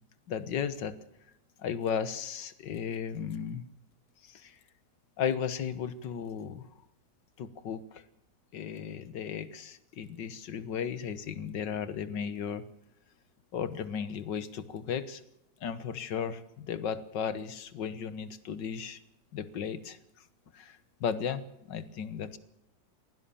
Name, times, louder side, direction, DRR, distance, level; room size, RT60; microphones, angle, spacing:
voice 1, 0.3-0.9 1.6-3.6 4.2-4.6 5.2-6.6 7.4-8.0 8.5-12.6 13.5-15.2 15.6-19.0 19.3-20.0 20.5-21.4 21.7-22.4, left 7 dB, 80° left, 14 dB, 1.9 m, -35 dB
22.5 x 17.0 x 7.1 m, 0.85 s
omnidirectional pair, 1.9 m